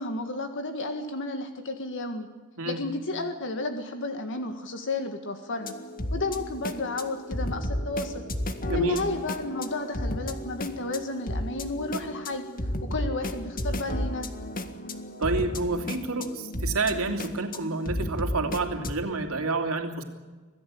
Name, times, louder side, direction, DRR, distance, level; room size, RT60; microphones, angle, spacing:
voice 1, 0.0-2.3 2.7-5.7 6.1-8.2 8.7-12.4 12.8-14.3, left 2 dB, 60° left, 6 dB, 1.9 m, -32 dB
sound 1, 5.6-18.9, left 1 dB, 40° left, 1.8 m, -33 dB
voice 2, 8.7-9.0 15.2-20.0, right 3 dB, 70° right, 5 dB, 3.1 m, -29 dB
26.0 x 17.0 x 8.6 m, 1.3 s
head